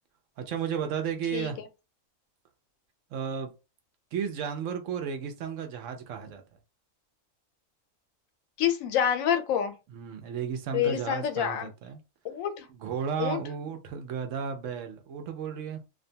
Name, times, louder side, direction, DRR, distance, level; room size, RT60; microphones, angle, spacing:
voice 1, 0.4-1.6 3.1-3.5 4.1-6.4 9.9-12.0 12.7-15.8, right 7 dB, 75° right, 0.9 m, -33 dB
voice 2, 8.6-9.7 10.7-11.7 12.2-12.7 13.2-13.4, left 9 dB, 85° left, 1.0 m, -27 dB
2.5 x 2.2 x 2.7 m
omnidirectional pair, 1.4 m